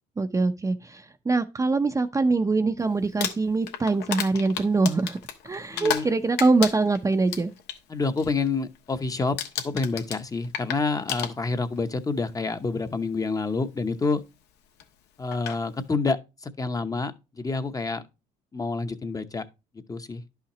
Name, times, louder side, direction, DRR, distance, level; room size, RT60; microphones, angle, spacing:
voice 1, 0.2-5.2 5.4-7.5, right 3 dB, 20° right, 0.6 m, -23 dB
Crumpling crinkling, 3.0-6.1 6.4-7.8 8.2-8.5 8.7-9.1 9.4-11.8 12.7-12.8 14.8-14.9 15.3-15.6, left 9 dB, 85° left, 1.2 m, -32 dB
voice 2, 5.7-6.1 7.9-9.4 9.6-14.2 15.2-18.0 18.5-19.5 19.9-20.2, left 3 dB, 20° left, 0.8 m, -28 dB
11.0 x 5.7 x 3.0 m
cardioid pair, 110°, 17 cm